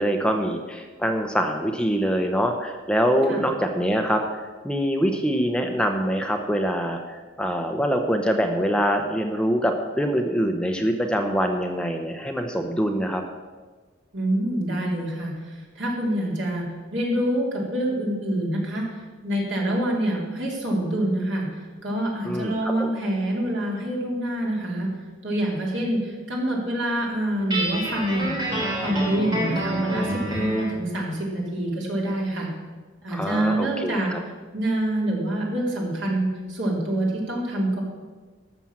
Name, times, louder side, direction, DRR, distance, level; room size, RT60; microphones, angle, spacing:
voice 1, 0.0-13.2 22.2-22.9 33.1-34.2, equal, 5° left, 4 dB, 0.7 m, -24 dB
voice 2, 14.1-18.8 19.2-21.5 21.8-24.9 25.2-28.3 28.8-32.5 33.0-34.1 34.5-37.8, right 1 dB, 70° right, -2 dB, 3.2 m, -26 dB
Guitar, 27.5-30.7, equal, 20° right, 3.6 m, -27 dB
13.0 x 6.2 x 7.3 m, 1.3 s
head